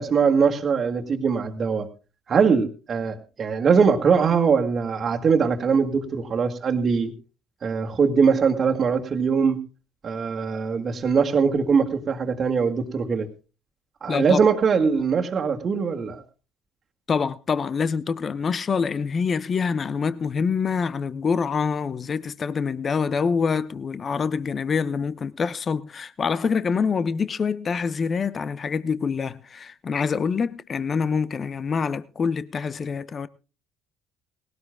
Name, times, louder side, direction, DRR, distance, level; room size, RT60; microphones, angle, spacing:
voice 1, 0.0-1.9 2.3-7.1 7.6-9.6 10.0-13.3 14.0-16.2, right 5 dB, 40° right, 1.8 m, -21 dB
voice 2, 14.1-14.4 17.1-33.3, left 5 dB, 40° left, 0.8 m, -25 dB
19.0 x 18.0 x 2.2 m
hypercardioid pair, 60°, 0 cm